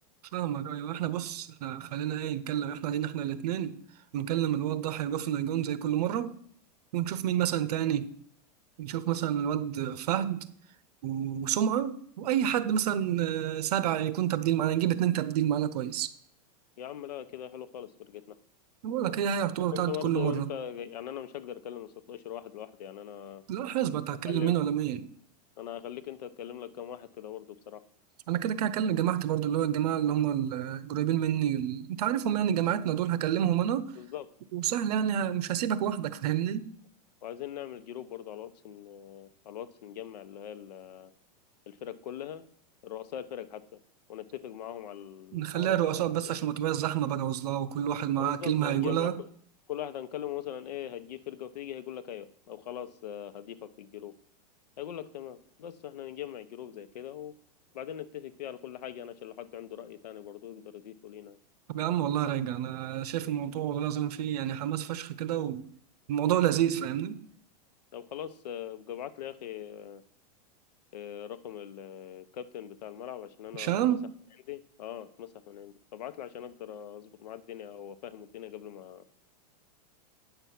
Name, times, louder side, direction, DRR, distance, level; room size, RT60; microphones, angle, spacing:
voice 1, 0.3-3.8 4.1-6.4 6.9-8.1 8.8-10.5 11.0-16.1 18.8-20.5 23.5-25.0 28.3-33.9 34.5-36.7 45.3-49.1 61.7-65.6 66.1-67.2 73.6-74.0, right 10 dB, 75° right, 0.9 m, -29 dB
voice 2, 16.8-18.4 19.7-23.4 24.3-24.6 25.6-27.8 34.0-34.3 37.2-41.1 41.7-42.4 42.8-43.6 44.1-46.4 48.2-49.3 49.7-54.1 54.8-57.3 57.7-61.4 67.9-70.0 70.9-73.8 74.5-79.0, left 10 dB, 90° left, 1.0 m, -41 dB
9.7 x 6.9 x 6.0 m
supercardioid pair, 150°, 21 cm